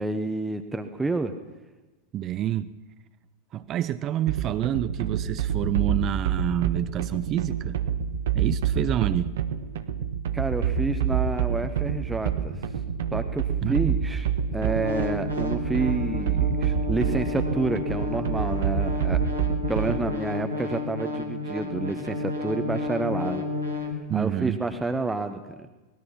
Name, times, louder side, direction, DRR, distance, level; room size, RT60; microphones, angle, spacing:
voice 1, 0.0-1.3 10.3-12.7 13.1-14.3 14.5-19.2 19.7-23.5 23.8-25.7, right 3 dB, 10° right, 7 dB, 1.2 m, -29 dB
voice 2, 2.1-2.7 3.5-7.8 8.3-9.3 13.6-14.0 24.1-24.6, right 11 dB, 30° right, 13 dB, 0.7 m, -28 dB
sound 1, 4.3-20.2, right 8 dB, 60° right, 1.3 m, -27 dB
sound 2, 11.8-23.9, left 3 dB, 80° right, 3.0 m, -33 dB
24.0 x 19.5 x 5.8 m, 1.1 s
figure-of-eight pair, 90°, 0 cm